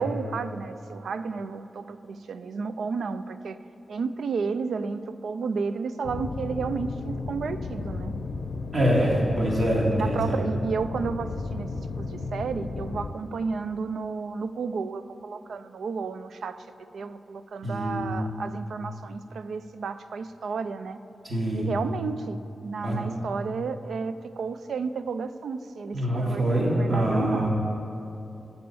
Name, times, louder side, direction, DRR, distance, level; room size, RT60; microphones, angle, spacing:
voice 1, 0.0-3.6 3.9-8.1 9.9-11.7 12.0-16.7 16.9-21.0 21.5-27.5, right 5 dB, 80° right, 12 dB, 0.3 m, -32 dB
sound 1, 6.0-13.1, left 3 dB, 80° left, 0.5 m, -34 dB
voice 2, 8.7-10.2 17.6-18.4 21.2-21.6 22.8-23.0 25.9-27.5, right 1 dB, 40° right, -4 dB, 2.0 m, -25 dB
12.0 x 4.3 x 7.0 m, 2.8 s
wide cardioid pair, 170°, 0 cm